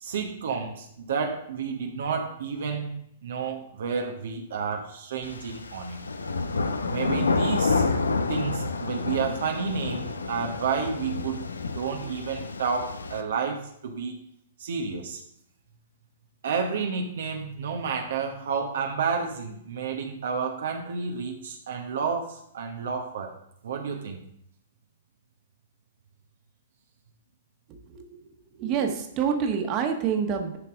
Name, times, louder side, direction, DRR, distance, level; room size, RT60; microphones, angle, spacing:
voice 1, 0.0-2.9 3.2-6.0 6.9-7.8 8.3-14.2 14.6-15.2 16.4-23.3 23.6-24.2, right 5 dB, 65° right, 2 dB, 1.1 m, -30 dB
sound 1, 5.2-13.2, left 4 dB, 80° left, 0.8 m, -29 dB
voice 2, 28.6-30.6, right 7 dB, 35° right, 4 dB, 1.5 m, -27 dB
11.0 x 5.8 x 3.7 m, 0.74 s
figure-of-eight pair, 110°, 0 cm